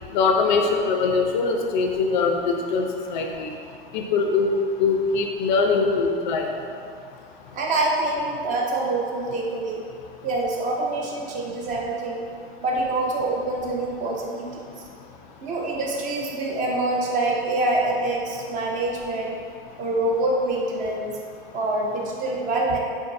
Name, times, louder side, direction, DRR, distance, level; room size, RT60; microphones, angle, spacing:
voice 1, 0.1-2.8 3.1-3.5 3.9-4.5 4.8-6.5, left 4 dB, 50° left, 2 dB, 0.4 m, -22 dB
voice 2, 7.5-9.9 10.2-12.3 12.6-14.6 15.4-19.3 19.8-21.1 21.5-22.8, right 2 dB, 25° right, -2 dB, 0.4 m, -25 dB
3.7 x 2.6 x 2.5 m, 2.3 s
hypercardioid pair, 95°, 30 cm